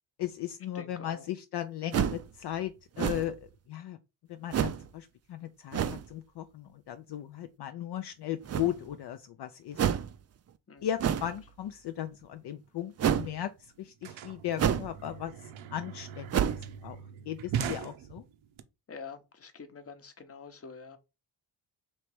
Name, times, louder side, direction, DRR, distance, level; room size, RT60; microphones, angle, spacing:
voice 1, 0.2-4.0 4.3-9.8 10.8-16.3 16.5-18.2, left 11 dB, 60° left, 0.5 m, -37 dB
voice 2, 0.7-1.3 10.7-10.9 18.9-21.0, left 5 dB, 30° left, 0.8 m, -46 dB
sound 1, 1.9-2.3 3.0-3.4 4.5-4.9 5.7-6.1 8.4-8.9 9.7-10.1 11.0-11.4 13.0-13.3 14.6-15.0 15.3-15.4 16.3-16.7, right 9 dB, 35° right, 0.4 m, -28 dB
sound 2, 13.4-18.6, right 8 dB, 80° right, 0.7 m, -40 dB
3.2 x 2.9 x 4.6 m
cardioid pair, 85°, 47 cm